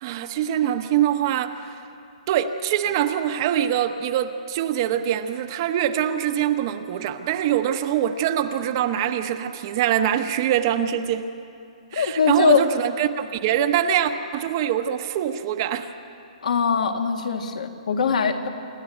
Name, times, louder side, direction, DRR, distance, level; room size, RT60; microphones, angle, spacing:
voice 1, 0.0-1.6 2.3-11.3 11.9-15.9, right 10 dB, 30° right, 8 dB, 0.9 m, -24 dB
voice 2, 11.9-12.6 16.4-18.5, left 6 dB, 75° left, 5 dB, 2.1 m, -21 dB
27.5 x 12.0 x 9.2 m, 2.5 s
hypercardioid pair, 165°, 4 cm